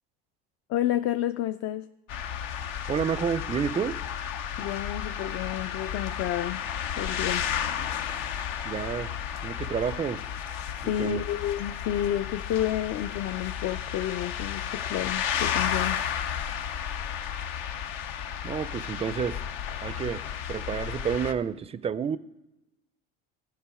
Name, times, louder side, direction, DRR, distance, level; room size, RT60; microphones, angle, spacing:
voice 1, 0.7-1.9 4.6-6.6 7.0-7.5 10.7-16.0, left 12 dB, 50° left, 11 dB, 0.4 m, -30 dB
sound 1, 2.1-21.3, left 8 dB, 75° left, 0.8 m, -33 dB
voice 2, 2.9-4.0 8.6-9.1 9.4-10.2 10.8-11.2 18.4-19.4 19.8-22.2, right 7 dB, 20° right, 17 dB, 0.4 m, -30 dB
14.0 x 5.7 x 4.8 m, 0.97 s
supercardioid pair, 90°, 29 cm